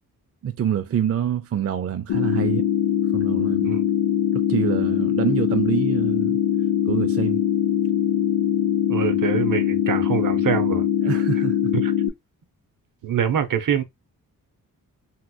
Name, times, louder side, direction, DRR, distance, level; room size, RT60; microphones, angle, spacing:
voice 1, 0.4-2.7 3.1-3.8 4.3-6.4 6.9-7.4 11.0-11.7, right 9 dB, 45° right, 0.4 m, -26 dB
sound 1, 2.1-12.1, left 10 dB, 85° left, 0.5 m, -22 dB
voice 2, 8.9-10.8 11.7-11.9 13.0-13.8, right 8 dB, 65° right, 0.7 m, -24 dB
3.5 x 2.9 x 2.2 m
wide cardioid pair, 115°, 35 cm